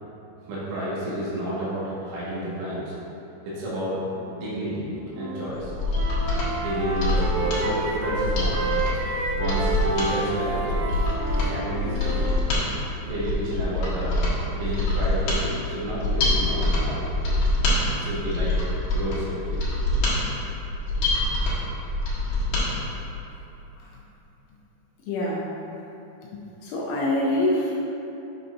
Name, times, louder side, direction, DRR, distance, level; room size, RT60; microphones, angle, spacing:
voice 1, 0.5-2.9 3.5-4.0 4.3-4.9 5.2-5.7 6.6-8.7 9.3-10.8 11.5-12.2 13.0-14.2 14.5-17.2 17.9-18.6 18.9-19.6, equal, 75° right, -9 dB, 4.2 m, -30 dB
Wind instrument woodwind instrument, 5.1-5.5 5.8-12.3, right 2 dB, 90° right, 2.5 m, -30 dB
Mechanisms, 5.6-22.7 23.0-23.1, left 1 dB, 60° left, 2.6 m, -25 dB
voice 2, 25.1-25.4 26.2-27.7, left 1 dB, 80° left, -4 dB, 2.9 m, -26 dB
8.6 x 6.9 x 2.6 m, 3.0 s
omnidirectional pair, 6.0 m